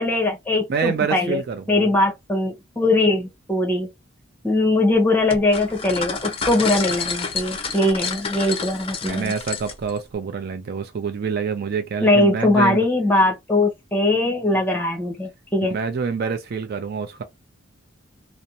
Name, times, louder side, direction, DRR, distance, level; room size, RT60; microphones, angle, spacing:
voice 1, 0.0-1.4 1.7-3.9 4.4-9.3 12.0-15.8, left 2 dB, 10° left, 0.9 m, -21 dB
voice 2, 0.7-1.9 9.0-12.8 15.7-17.2, right 5 dB, 50° right, 0.4 m, -26 dB
sound 1, 5.3-10.0, left 5 dB, 30° left, 0.5 m, -29 dB
2.5 x 2.0 x 2.8 m
head